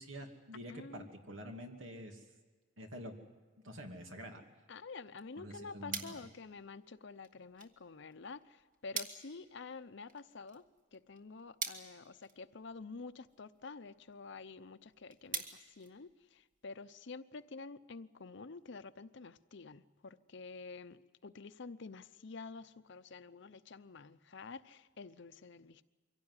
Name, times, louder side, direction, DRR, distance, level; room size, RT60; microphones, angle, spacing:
voice 1, 0.0-2.2 2.8-3.2 3.6-4.4 5.4-6.0, equal, 90° right, 3 dB, 2.7 m, -47 dB
voice 2, 0.7-1.1 4.7-10.6 10.9-25.8, left 4 dB, 65° left, 12 dB, 0.7 m, -49 dB
sound 1, 5.2-16.6, right 4 dB, 45° right, 1.9 m, -48 dB
24.0 x 17.0 x 9.7 m, 1.3 s
head